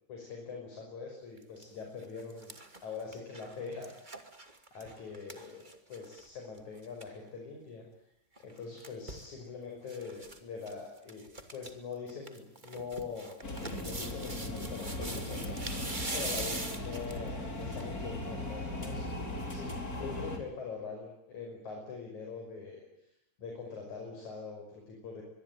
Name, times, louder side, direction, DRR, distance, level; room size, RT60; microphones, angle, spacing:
voice 1, 0.1-4.3 4.7-5.6 5.9-7.8 8.4-11.2 11.5-13.4 13.8-23.1 23.4-25.2, left 5 dB, 50° left, 1 dB, 6.9 m, -43 dB
sound 1, 1.4-1.6 2.0-6.3 6.6-6.7 6.8-7.1 8.4-9.3 9.9-10.4 10.6-10.7 11.1-11.7 12.1-17.3 17.8-17.9, right 2 dB, 15° right, 1.9 m, -42 dB
sound 2, 13.4-20.4, left 2 dB, 20° left, 4.6 m, -38 dB
24.0 x 23.0 x 9.4 m, 0.83 s
omnidirectional pair, 4.5 m